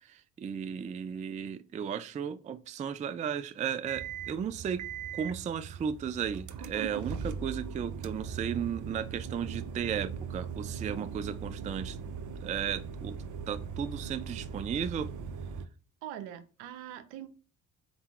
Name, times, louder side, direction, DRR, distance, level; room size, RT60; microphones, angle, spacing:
voice 1, 0.0-4.8 5.1-12.0 12.4-13.2 13.5-15.1, right 8 dB, 20° right, 0.3 m, -35 dB
sound 1, 3.9-15.6, right 6 dB, 40° right, 0.7 m, -39 dB
voice 2, 16.0-17.3, right 11 dB, 75° right, 0.9 m, -43 dB
4.1 x 3.7 x 2.4 m
hypercardioid pair, 55°, 46 cm